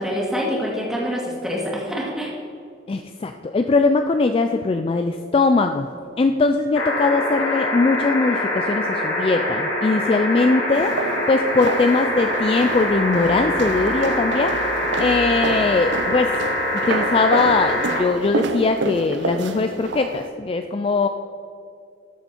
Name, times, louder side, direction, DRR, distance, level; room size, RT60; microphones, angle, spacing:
voice 1, 0.0-2.4, equal, 5° right, -3 dB, 1.9 m, -26 dB
voice 2, 2.9-5.9 6.2-10.9 11.3-14.6 15.0-16.3 16.8-21.1, left 3 dB, 30° left, 6 dB, 0.3 m, -20 dB
sound 1, 6.7-18.0 19.4-19.5, left 1 dB, 85° left, 2.8 m, -24 dB
sound 2, 10.7-20.3, right 3 dB, 65° right, 0.6 m, -29 dB
13.0 x 7.0 x 4.3 m, 2.5 s
head